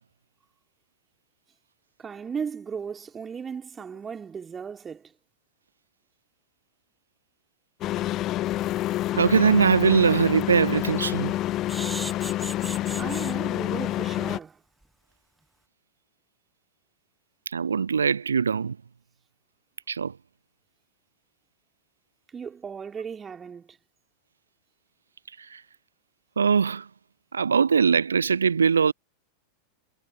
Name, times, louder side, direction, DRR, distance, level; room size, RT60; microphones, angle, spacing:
voice 1, 2.0-5.1 13.0-14.6 22.3-23.8, right 6 dB, 20° right, 4.2 m, -36 dB
sound 1, 7.8-14.4, left 14 dB, 35° left, 1.3 m, -28 dB
voice 2, 9.1-11.3 17.5-18.8 19.9-20.1 25.4-25.6 26.4-26.9 27.3-28.9, right 6 dB, 70° right, 0.9 m, -21 dB
sound 2, 9.9-10.0 10.4-10.6 11.7-13.3 13.9-14.1 14.4-14.5 14.8-14.9, right 1 dB, 5° right, 0.9 m, -37 dB
figure-of-eight pair, 90°, 0 cm